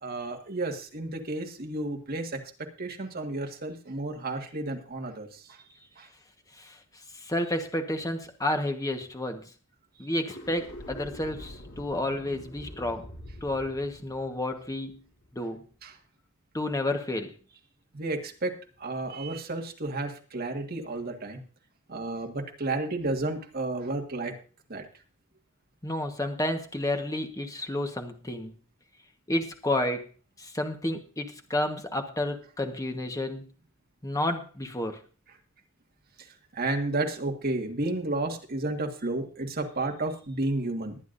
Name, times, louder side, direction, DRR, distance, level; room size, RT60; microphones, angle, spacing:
voice 1, 0.0-2.4 2.8-5.3 6.0-6.1 15.8-15.9 17.9-18.5 18.8-21.4 21.9-24.3 24.7-24.8 36.5-41.0, right 2 dB, 50° right, 2 dB, 1.8 m, -32 dB
voice 2, 7.2-9.4 10.0-13.1 13.4-15.0 15.3-15.6 16.5-17.3 25.8-28.5 29.3-30.1 30.4-33.5 34.0-35.0, left 1 dB, 15° left, 5 dB, 1.3 m, -30 dB
sound 1, 10.2-15.4, equal, 85° left, 4.5 m, -45 dB
21.0 x 9.4 x 2.6 m, 0.37 s
head